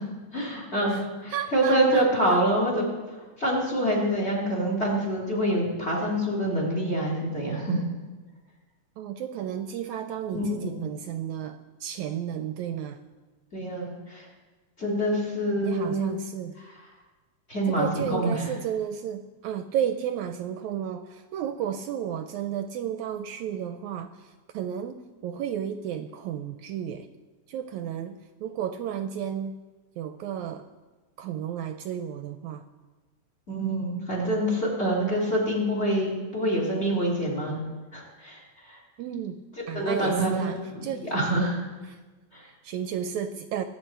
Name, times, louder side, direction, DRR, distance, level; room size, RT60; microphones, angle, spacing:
voice 1, 0.3-2.8 3.4-7.8 10.3-10.9 13.5-14.3 14.8-16.1 17.5-18.5 33.5-37.6 37.9-38.4 38.7-38.8 39.7-41.6 42.3-42.4, right 1 dB, 20° left, -2 dB, 3.0 m, -26 dB
voice 2, 1.3-2.4 9.0-13.0 15.6-16.6 17.7-27.1 27.5-29.6 30.0-30.7 31.2-32.6 39.0-41.1 41.9-42.0 42.4-43.6, right 9 dB, 80° right, 8 dB, 1.8 m, -33 dB
24.5 x 8.6 x 4.5 m, 1.3 s
omnidirectional pair, 3.6 m